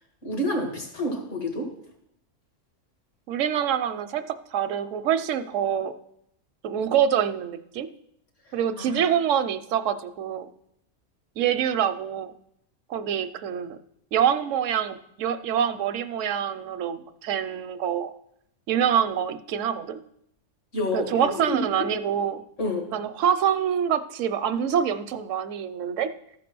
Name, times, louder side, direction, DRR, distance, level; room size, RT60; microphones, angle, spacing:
voice 1, 0.2-1.7 8.5-9.1 20.7-21.7 22.6-22.9, equal, 75° left, 1 dB, 2.6 m, -29 dB
voice 2, 3.3-4.2 4.5-5.9 6.6-7.9 8.5-10.5 11.4-12.3 12.9-13.8 14.1-18.1 18.7-20.0 20.9-22.4 22.9-26.1, right 9 dB, 80° right, 11 dB, 1.0 m, -25 dB
13.5 x 5.3 x 6.0 m, 0.75 s
omnidirectional pair, 1.3 m